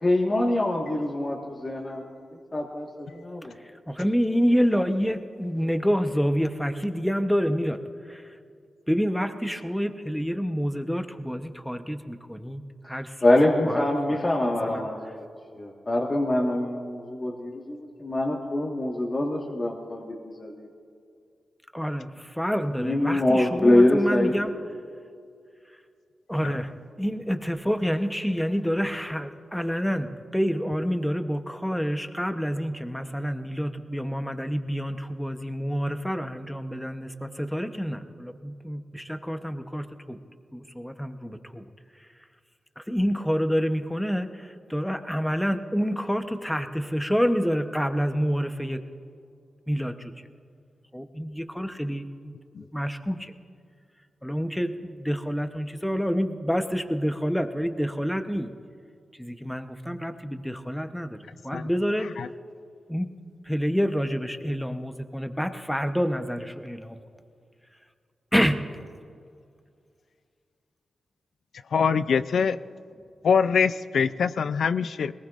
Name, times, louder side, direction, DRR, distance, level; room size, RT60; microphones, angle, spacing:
voice 1, 0.0-2.0 2.5-2.9 3.1-3.6 13.2-15.2 15.5-20.7 22.8-24.3, left 1 dB, 30° left, -1 dB, 1.6 m, -24 dB
voice 2, 3.6-7.8 8.1-8.3 8.9-13.2 13.6-14.2 14.6-14.9 21.7-24.5 26.3-26.7 27.0-40.2 40.5-41.7 42.8-48.8 49.7-50.1 50.9-53.3 54.2-58.5 59.2-62.1 62.9-63.1 63.5-67.0 68.3-68.6, equal, 5° left, 8 dB, 0.9 m, -28 dB
voice 3, 71.7-72.6 73.2-75.1, left 6 dB, 80° left, 13 dB, 0.4 m, -23 dB
21.5 x 19.0 x 2.5 m, 2.3 s
cardioid pair, 80°, 0 cm